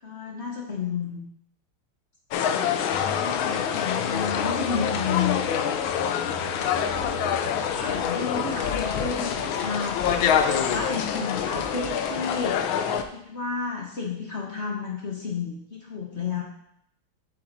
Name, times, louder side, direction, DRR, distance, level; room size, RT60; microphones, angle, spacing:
voice 1, 0.0-1.2 3.2-5.4 7.7-12.9 13.1-16.4, left 5 dB, 40° left, -2 dB, 1.1 m, -31 dB
sound 1, 2.3-13.0, left 8 dB, 85° left, 1.4 m, -26 dB
sound 2, 2.9-12.8 13.0-13.1, right 1 dB, 45° right, 2.1 m, -43 dB
sound 3, 6.6-12.4, left 5 dB, 60° left, 1.0 m, -39 dB
7.6 x 7.4 x 2.6 m, 0.73 s
omnidirectional pair, 2.2 m